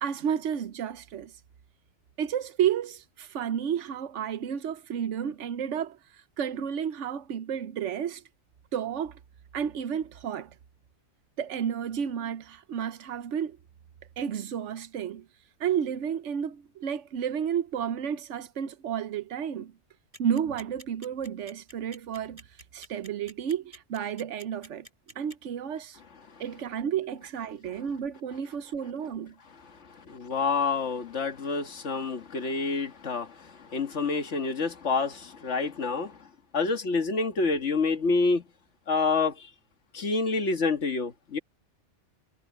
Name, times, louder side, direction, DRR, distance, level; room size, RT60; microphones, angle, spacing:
voice 1, 0.0-1.3 2.2-6.0 6.4-8.2 8.7-9.2 9.5-10.5 11.4-13.6 14.2-15.3 15.6-19.7 20.2-22.4 22.7-24.9 25.2-26.0 26.4-29.3, right 8 dB, 80° right, 1.1 m, -31 dB
sound 1, 20.1-25.3, right 1 dB, 30° right, 6.1 m, -47 dB
voice 2, 29.7-36.3 36.5-38.4 38.9-39.5 39.9-41.4, left 4 dB, 75° left, 1.9 m, -28 dB
omnidirectional pair, 1.2 m